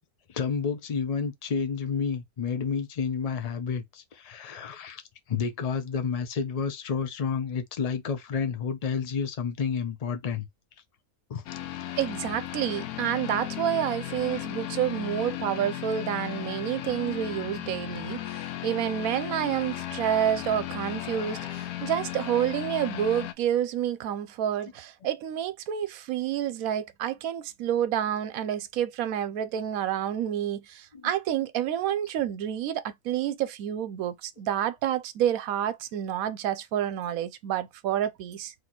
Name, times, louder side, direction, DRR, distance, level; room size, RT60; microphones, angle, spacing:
voice 1, 0.3-5.0 5.3-10.4 11.3-11.4 30.9-31.1, left 6 dB, 65° left, 0.3 m, -30 dB
sound 1, 11.5-23.3, left 13 dB, 85° left, 1.1 m, -36 dB
voice 2, 12.0-38.5, right 10 dB, 75° right, 1.0 m, -29 dB
3.2 x 2.9 x 4.0 m
omnidirectional pair, 1.5 m